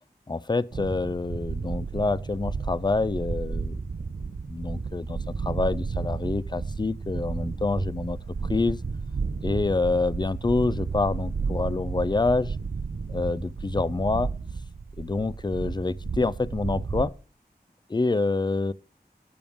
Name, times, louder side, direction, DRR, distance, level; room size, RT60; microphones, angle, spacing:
voice 1, 0.3-3.8 4.5-8.2 8.5-8.8 9.4-12.6 13.1-14.3 15.0-17.1 17.9-18.7, left 3 dB, 25° left, 0.4 m, -27 dB
sound 1, 0.7-17.1, right 4 dB, 60° right, 0.6 m, -32 dB
Bowed string instrument, 7.9-12.1, left 1 dB, 45° left, 6.4 m, -65 dB
12.5 x 8.7 x 3.6 m
wide cardioid pair, 50°, 17 cm